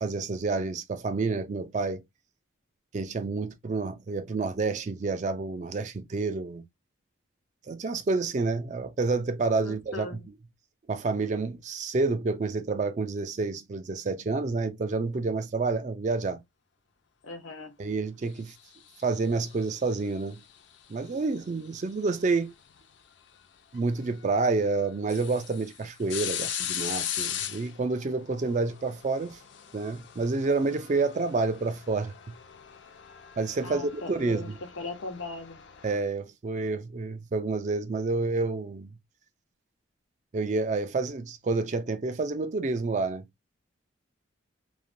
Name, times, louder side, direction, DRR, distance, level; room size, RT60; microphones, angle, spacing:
voice 1, 0.0-2.0 2.9-6.6 7.7-10.2 10.9-16.4 17.8-18.5 19.0-20.4 20.9-22.5 23.7-29.4 29.7-32.4 33.4-34.6 35.8-38.9 40.3-43.2, right 3 dB, 35° right, 0.3 m, -29 dB
voice 2, 9.6-10.2 17.2-17.7 33.6-35.6, left 3 dB, 90° left, 0.7 m, -39 dB
sound 1, 18.7-20.2 22.0-22.2 23.7-23.8 24.3-24.4 24.8-36.0, left 10 dB, 60° left, 0.5 m, -39 dB
3.1 x 2.1 x 2.5 m
head